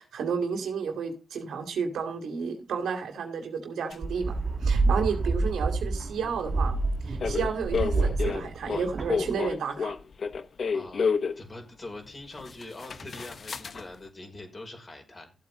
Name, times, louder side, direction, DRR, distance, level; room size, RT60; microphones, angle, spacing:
voice 1, 0.0-6.8 7.0-9.9, right 6 dB, 80° right, 2.4 m, -32 dB
sound 1, 3.9-4.0 7.2-11.4 12.1-12.2 12.4-13.9, left 5 dB, 60° left, 1.1 m, -30 dB
sound 2, 4.0-9.5, right 3 dB, 55° right, 2.2 m, -28 dB
voice 2, 10.7-11.1 11.4-15.3, left 2 dB, 40° left, 5.6 m, -43 dB
14.5 x 8.2 x 3.8 m
supercardioid pair, 50°, 0 cm